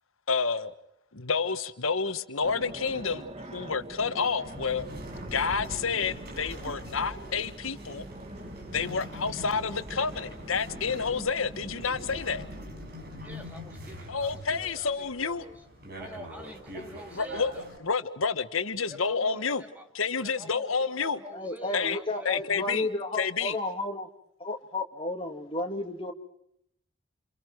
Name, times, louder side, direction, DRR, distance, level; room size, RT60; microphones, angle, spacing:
voice 1, 0.3-0.7 1.1-3.2 3.5-4.9 5.2-8.1 8.7-12.5 14.1-15.4 17.2-17.5 17.8-19.6 19.9-21.2 21.7-22.0 22.2-22.9 23.2-23.5, left 5 dB, 90° left, 11 dB, 1.4 m, -29 dB
sound 1, 2.4-12.6, right 1 dB, 30° right, 1.6 m, -45 dB
sound 2, 4.4-17.8, equal, 50° right, 7.3 m, -43 dB
voice 2, 13.2-15.6 16.0-17.7 18.9-19.9 20.2-22.7, equal, 10° right, 4 dB, 2.6 m, -47 dB
voice 3, 21.3-24.1 24.4-26.1, left 2 dB, 25° left, 5 dB, 2.3 m, -32 dB
29.5 x 28.0 x 4.7 m, 0.71 s
head